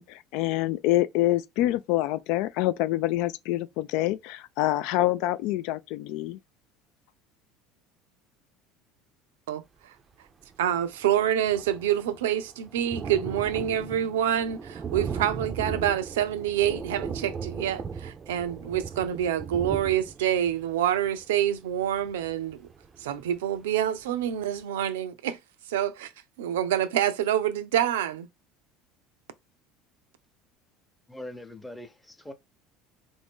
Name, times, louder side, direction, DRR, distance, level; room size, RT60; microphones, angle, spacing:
voice 1, 0.0-6.4, left 15 dB, 70° left, 0.4 m, -26 dB
Thunder, 10.4-10.5 10.7-23.4 23.9-24.0 24.3-24.4, right 6 dB, 30° right, 0.5 m, -38 dB
voice 2, 10.6-22.6 23.0-25.4 25.7-26.1 26.4-28.3, right 10 dB, 90° right, 0.4 m, -27 dB
voice 3, 31.1-32.3, left 1 dB, 5° left, 0.8 m, -42 dB
3.6 x 2.6 x 3.5 m
supercardioid pair, 90°, 0 cm